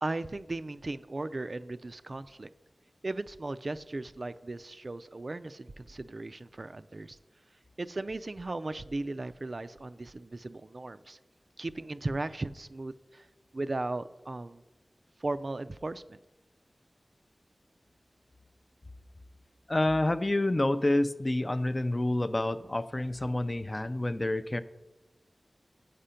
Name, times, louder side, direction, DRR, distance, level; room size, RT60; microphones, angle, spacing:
voice 1, 0.0-2.5 3.0-7.2 7.8-11.2 11.6-13.3 13.5-14.6 15.2-16.2, right 2 dB, 55° right, 12 dB, 0.3 m, -37 dB
voice 2, 19.7-24.6, left 1 dB, 35° left, 11 dB, 0.4 m, -28 dB
8.0 x 5.1 x 5.6 m, 1.1 s
wide cardioid pair, 50°, 0 cm